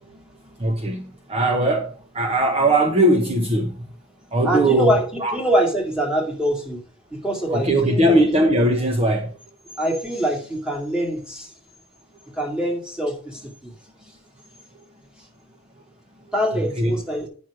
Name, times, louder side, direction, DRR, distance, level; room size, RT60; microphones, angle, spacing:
voice 1, 0.6-1.0 1.3-1.9 2.1-3.7 4.3-4.9 5.2-5.3 7.5-9.3 16.8-17.0, right 1 dB, 30° right, 1.0 m, -19 dB
voice 2, 4.4-6.8 7.1-8.2 9.8-11.5 12.3-13.7 16.3-17.3, right 1 dB, 5° right, 2.3 m, -24 dB
9.4 x 6.2 x 4.9 m
head